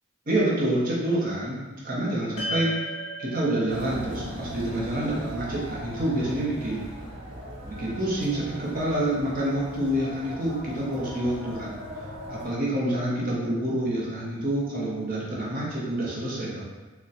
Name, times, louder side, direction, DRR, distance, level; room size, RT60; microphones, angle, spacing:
voice 1, 0.3-2.8 3.2-6.8 7.7-16.6, right 1 dB, 40° right, -6 dB, 0.7 m, -27 dB
sound 1, 2.4-6.8, equal, 35° left, 1.0 m, -37 dB
sound 2, 3.7-12.5, equal, 60° right, 0.9 m, -39 dB
4.0 x 2.1 x 2.4 m, 1.2 s
head